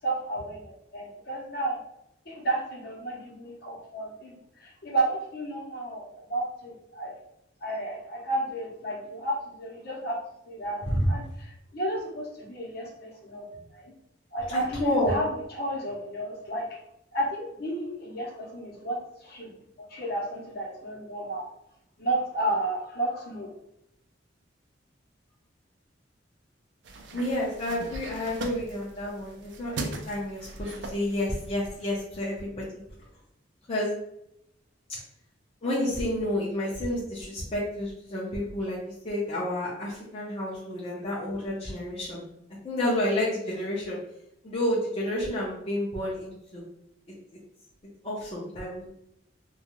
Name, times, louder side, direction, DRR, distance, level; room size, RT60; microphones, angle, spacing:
voice 1, 0.0-1.8 2.3-6.0 6.3-7.2 7.6-10.2 10.5-11.2 11.7-13.4 13.7-13.9 14.3-16.7 17.1-19.5 19.9-21.5 22.0-23.5, right 1 dB, 55° left, -2 dB, 0.8 m, -32 dB
voice 2, 14.5-15.2 27.1-32.7 33.7-33.9 34.9-35.0 35.6-42.3 42.6-44.0 44.4-46.6 48.0-48.9, left 1 dB, 30° left, -7 dB, 0.5 m, -30 dB
sound 1, 26.8-32.0, right 3 dB, 65° right, 0.4 m, -40 dB
2.4 x 2.3 x 2.9 m, 0.78 s
head